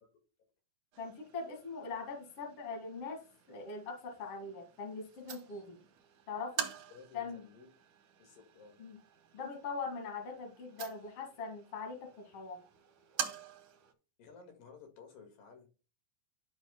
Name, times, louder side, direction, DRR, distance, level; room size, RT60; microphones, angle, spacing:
sound 1, 0.9-13.9, right 9 dB, 70° right, 2.4 m, -46 dB
voice 1, 1.0-3.2 3.5-5.8 6.3-6.7 7.1-7.4 8.8-9.0 9.3-12.6, left 4 dB, 45° left, 2.7 m, -41 dB
voice 2, 6.9-7.7 8.2-8.8 14.2-15.7, left 5 dB, 75° left, 3.5 m, -55 dB
11.5 x 6.1 x 2.2 m
omnidirectional pair, 4.1 m